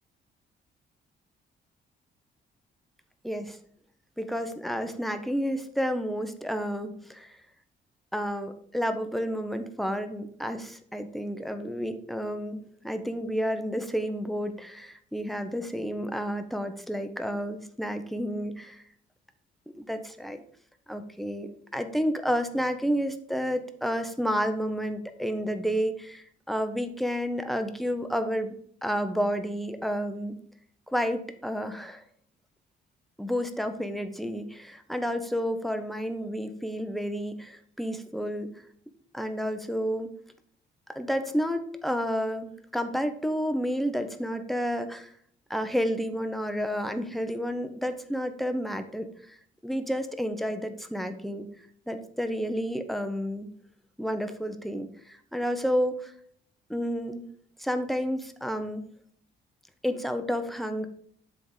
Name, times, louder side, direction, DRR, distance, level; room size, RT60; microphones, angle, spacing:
voice 1, 3.2-3.6 4.2-7.4 8.1-18.8 19.7-20.4 20.9-28.6 28.8-30.4 30.9-32.0 33.2-38.5 39.1-40.1 40.9-45.1 45.5-49.4 49.6-51.5 51.9-53.5 54.0-56.1 56.7-57.3 57.6-58.9 59.8-60.9, equal, ahead, 8 dB, 0.7 m, -30 dB
7.8 x 3.6 x 4.8 m, 0.63 s
cardioid pair, 90°, 20 cm